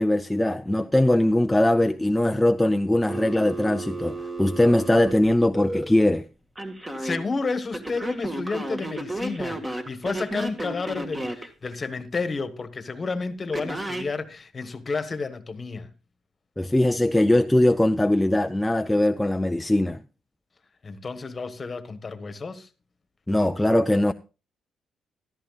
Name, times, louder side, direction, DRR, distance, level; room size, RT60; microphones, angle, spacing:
voice 1, 0.0-6.2 16.6-20.0 23.3-24.1, left 1 dB, 10° left, 0.4 m, -21 dB
Telephone, 3.1-5.8 6.6-7.2 7.7-11.5 13.5-14.1, right 1 dB, 15° right, 1.8 m, -32 dB
voice 2, 7.0-15.9 20.8-22.7, left 4 dB, 35° left, 1.3 m, -31 dB
13.5 x 12.5 x 2.4 m
cardioid pair, 90°, 0 cm